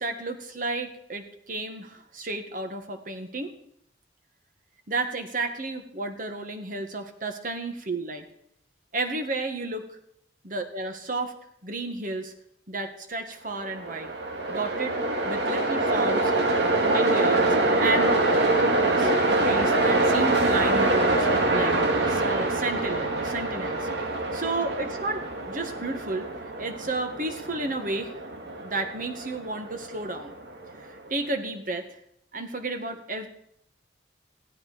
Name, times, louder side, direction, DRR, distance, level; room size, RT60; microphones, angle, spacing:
voice 1, 0.0-3.5 4.9-8.2 8.9-9.9 10.4-11.3 11.6-12.3 12.7-14.1 14.5-15.0 15.3-16.3 16.6-18.1 18.6-19.1 19.4-21.3 21.5-21.7 22.1-23.9 24.3-26.3 26.6-28.1 28.6-30.3 31.1-31.9 32.3-33.3, right 2 dB, 45° right, 6 dB, 1.8 m, -32 dB
Train, 13.6-30.8, right 2 dB, 70° right, 2.1 m, -25 dB
16.0 x 13.0 x 5.2 m, 0.75 s
head